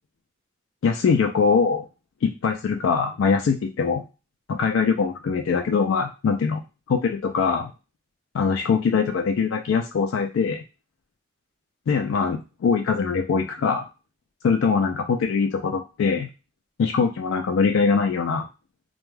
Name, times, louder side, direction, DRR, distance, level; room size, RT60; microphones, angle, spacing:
voice 1, 0.8-1.9 2.2-4.0 4.5-6.6 6.9-7.7 8.3-10.6 11.9-13.8 14.4-16.3 16.8-18.4, left 5 dB, 90° left, 4 dB, 0.3 m, -22 dB
2.2 x 2.2 x 3.1 m, 0.29 s
head